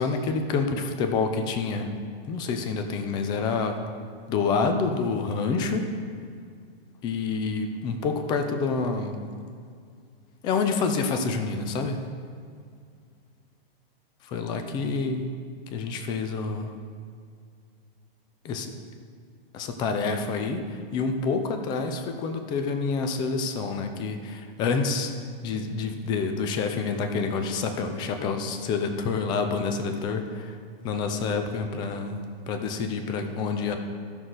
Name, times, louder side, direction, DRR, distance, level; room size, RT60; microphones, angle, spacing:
voice 1, 0.0-1.9 2.3-3.8 4.3-5.9 7.0-9.2 10.4-12.0 14.2-15.3 15.7-16.7 18.4-18.7 19.5-20.6 20.9-25.1 25.4-30.6 30.8-33.8, left 4 dB, 15° left, 6 dB, 0.5 m, -28 dB
15.0 x 6.3 x 3.9 m, 2.1 s
hypercardioid pair, 155°, 30 cm